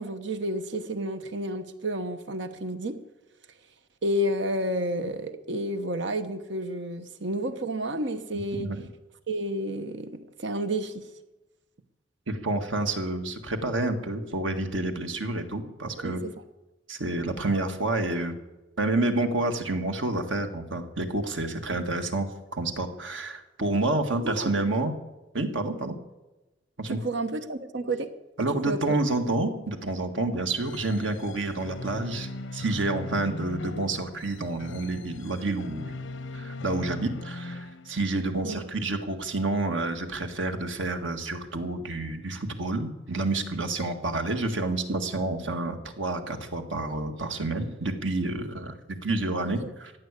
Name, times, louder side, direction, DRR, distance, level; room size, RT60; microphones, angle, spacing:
voice 1, 0.0-3.0 4.0-8.7 9.3-11.0 16.0-16.3 21.7-21.8 24.2-24.6 26.9-28.1 28.7-28.8 38.4-38.7 49.6-49.7, right 1 dB, 65° right, 10 dB, 1.2 m, -30 dB
voice 2, 12.3-16.2 16.9-18.4 18.8-24.9 25.3-26.0 26.8-27.0 28.4-35.9 36.3-49.9, right 2 dB, 85° right, 6 dB, 1.9 m, -29 dB
sound 1, 30.6-38.3, left 2 dB, 85° left, 0.8 m, -39 dB
15.0 x 9.6 x 8.3 m, 1.0 s
head